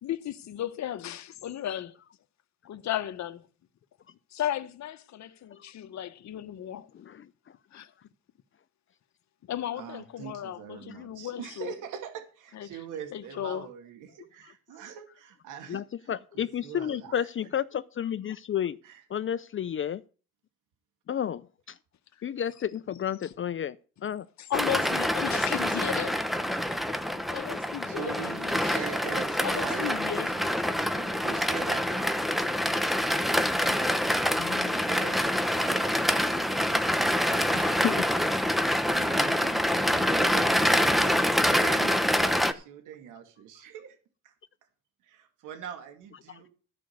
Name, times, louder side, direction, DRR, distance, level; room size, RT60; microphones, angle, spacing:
voice 1, 0.0-1.9 2.6-3.4 4.3-6.9 7.7-7.9 9.5-11.7 12.5-12.7 13.1-13.7 24.5-26.2 26.7-27.0 27.3-28.8 29.4-30.3, left 11 dB, 65° left, 1.1 m, -35 dB
voice 2, 6.9-7.3 14.4-14.5 15.7-18.8 19.1-20.0 21.1-21.8 22.2-23.8 24.0-24.3 34.3-34.8 37.5-38.1 46.3-46.4, left 9 dB, 40° left, 0.6 m, -32 dB
voice 3, 9.8-17.3 18.8-19.0 27.8-32.3 33.1-36.9 37.3-37.9 38.6-44.0 44.2-44.3 45.0-46.5, right 8 dB, 90° right, 2.3 m, -43 dB
sound 1, 24.5-42.5, equal, ahead, 1.0 m, -26 dB
14.0 x 5.3 x 8.0 m
cardioid pair, 90°, 30 cm